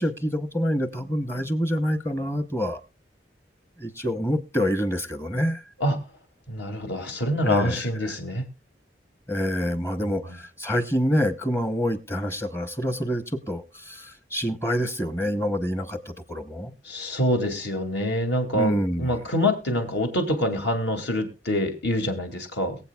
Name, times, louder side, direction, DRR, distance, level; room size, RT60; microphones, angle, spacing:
voice 1, 0.0-2.8 3.8-5.6 7.4-8.2 9.3-16.7 18.5-19.2, equal, 15° left, 11 dB, 0.9 m, -27 dB
voice 2, 6.5-8.4 10.0-10.4 16.8-22.8, left 1 dB, 70° left, 5 dB, 2.4 m, -26 dB
22.5 x 7.7 x 2.3 m, 0.28 s
head